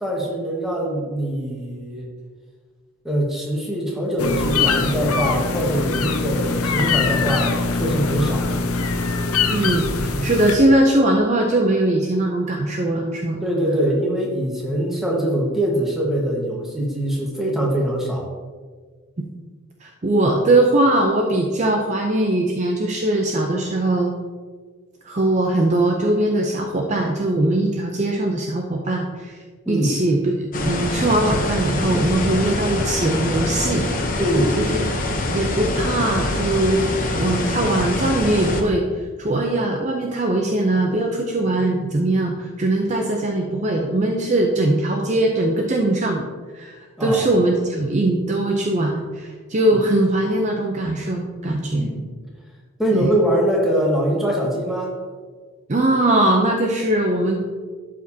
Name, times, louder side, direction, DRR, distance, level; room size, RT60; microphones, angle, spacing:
voice 1, 0.0-2.1 3.0-8.5 13.4-18.3 29.6-30.0 34.2-34.6 47.0-47.3 51.7-52.1 52.8-54.9, right 1 dB, ahead, -3 dB, 1.3 m, -23 dB
sound 1, 4.2-10.5, left 4 dB, 85° left, 0.6 m, -22 dB
voice 2, 9.5-13.4 19.8-24.1 25.0-29.4 29.7-30.3 30.6-33.9 34.6-34.7 35.3-36.9 37.2-46.2 46.5-51.9 52.9-53.1 55.7-57.4, right 1 dB, 35° right, 1 dB, 0.5 m, -20 dB
sound 2, 30.5-38.6, left 2 dB, 40° left, 0.7 m, -24 dB
11.5 x 5.0 x 2.7 m, 1.5 s
head